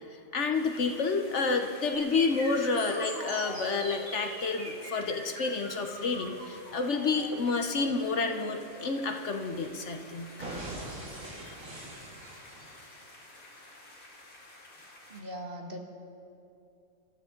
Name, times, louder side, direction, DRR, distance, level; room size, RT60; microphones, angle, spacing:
voice 1, 0.1-10.3 11.4-11.5, left 4 dB, 60° left, 5 dB, 1.2 m, -29 dB
sound 1, 0.5-15.2, left 1 dB, 85° left, 2.8 m, -52 dB
sound 2, 1.9-9.9 10.4-12.9, right 1 dB, 70° right, 2.8 m, -42 dB
voice 2, 15.1-15.8, equal, 45° right, 2 dB, 1.7 m, -40 dB
25.0 x 13.0 x 3.8 m, 2.6 s
omnidirectional pair, 1.4 m